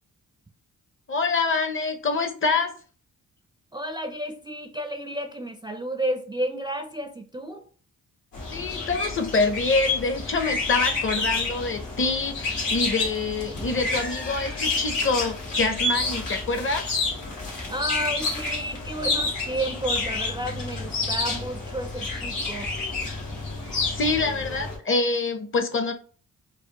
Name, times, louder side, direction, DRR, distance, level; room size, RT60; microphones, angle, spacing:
voice 1, 1.1-2.7 8.5-16.9 23.9-25.9, left 3 dB, 40° left, 0.7 m, -26 dB
voice 2, 3.7-7.6 17.7-22.7, right 1 dB, 15° right, 0.4 m, -31 dB
sound 1, 8.3-24.8, left 3 dB, 80° left, 1.5 m, -29 dB
4.9 x 2.0 x 2.8 m
cardioid pair, 75°, 33 cm